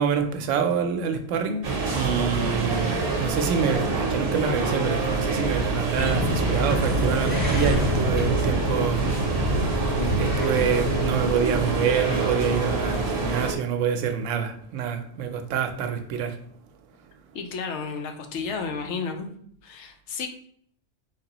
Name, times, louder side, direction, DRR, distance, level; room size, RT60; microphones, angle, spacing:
voice 1, 0.0-9.0 10.2-16.3, right 7 dB, 80° right, 6 dB, 0.9 m, -27 dB
sound 1, 1.6-13.5, right 3 dB, 55° right, 0.9 m, -26 dB
sound 2, 5.9-11.3, equal, 10° right, 0.8 m, -26 dB
voice 2, 17.3-19.3 19.6-20.3, left 5 dB, 70° left, 5 dB, 0.9 m, -32 dB
3.6 x 3.2 x 2.9 m, 0.65 s
omnidirectional pair, 1.3 m